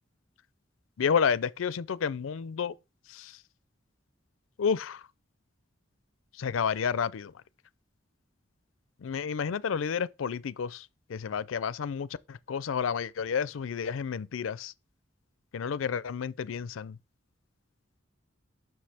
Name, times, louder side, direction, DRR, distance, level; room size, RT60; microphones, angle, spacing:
voice 1, 1.0-2.7 3.1-3.4 4.6-5.0 6.4-7.3 9.0-14.7 15.5-17.0, left 6 dB, 85° left, 0.4 m, -30 dB
7.4 x 6.2 x 3.4 m
head